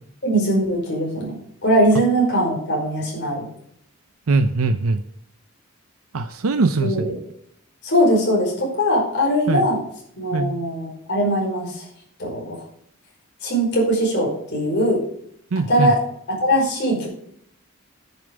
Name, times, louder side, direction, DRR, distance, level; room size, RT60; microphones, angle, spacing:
voice 1, 0.2-1.4 1.6-3.5 6.8-7.0 7.8-9.8 10.2-11.9 12.2-12.5 13.4-15.0 15.7-16.0 16.4-17.1, equal, 55° left, -2 dB, 5.0 m, -20 dB
voice 2, 4.3-5.0 6.1-7.1 9.5-9.7 10.3-10.5 15.5-15.9, right 3 dB, 85° right, 9 dB, 0.6 m, -21 dB
10.5 x 6.9 x 5.1 m, 0.68 s
head